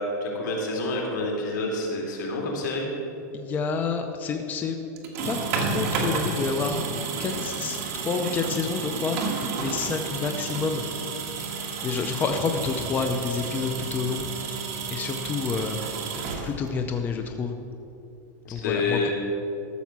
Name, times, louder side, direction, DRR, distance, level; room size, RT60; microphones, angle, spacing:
voice 1, 0.0-2.9 18.4-19.1, left 2 dB, 75° left, -1 dB, 3.1 m, -28 dB
voice 2, 3.3-4.8 5.2-6.8 7.2-9.2 9.6-10.8 11.8-14.3 14.9-15.8 16.4-17.5 18.5-19.1, left 5 dB, 15° left, 5 dB, 0.5 m, -28 dB
sound 1, 5.0-16.9, right 4 dB, 45° right, 1.8 m, -31 dB
13.5 x 7.1 x 6.0 m, 2.9 s
supercardioid pair, 160°, 10 cm